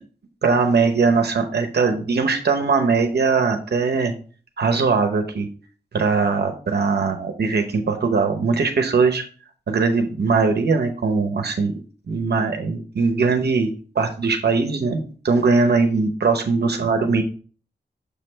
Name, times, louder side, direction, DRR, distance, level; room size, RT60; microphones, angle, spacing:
voice 1, 0.4-4.1 4.6-5.5 5.9-9.2 9.7-11.7 12.1-17.2, right 4 dB, 70° right, 5 dB, 0.8 m, -20 dB
6.9 x 3.2 x 4.4 m, 0.40 s
wide cardioid pair, 75°, 18 cm